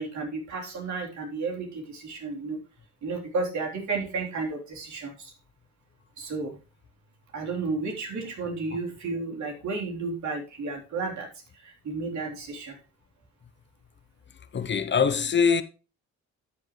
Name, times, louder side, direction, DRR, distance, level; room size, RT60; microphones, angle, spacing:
voice 1, 0.0-2.6 3.0-5.3 6.2-6.6 7.3-11.3 11.5-12.8, right 3 dB, 70° right, 3.8 m, -32 dB
voice 2, 14.5-15.6, left 6 dB, 40° left, 0.8 m, -23 dB
12.5 x 7.2 x 3.2 m
cardioid pair, 90°, 30 cm